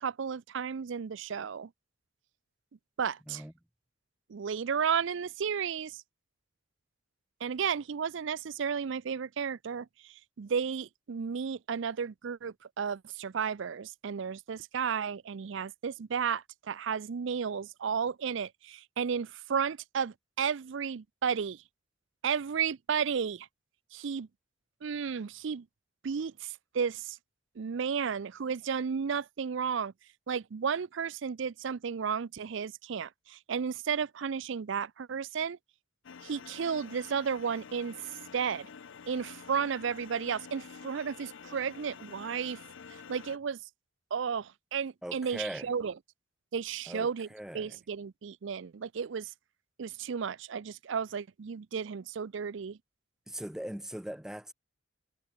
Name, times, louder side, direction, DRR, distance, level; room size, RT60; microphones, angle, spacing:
voice 1, 0.0-1.7 3.0-3.4 4.3-6.0 7.4-21.6 22.2-23.5 23.9-24.3 24.8-25.7 26.0-27.2 27.6-29.9 30.3-35.6 36.2-38.0 38.3-38.7 39.1-42.6 43.1-43.6 44.1-45.9 46.5-47.3 47.5-49.3 49.8-52.8, right 6 dB, 65° right, 0.4 m, -33 dB
sound 1, 36.0-43.4, left 6 dB, 70° left, 0.6 m, -49 dB
voice 2, 45.0-45.7 46.9-47.8 53.3-54.5, equal, 5° right, 0.3 m, -40 dB
head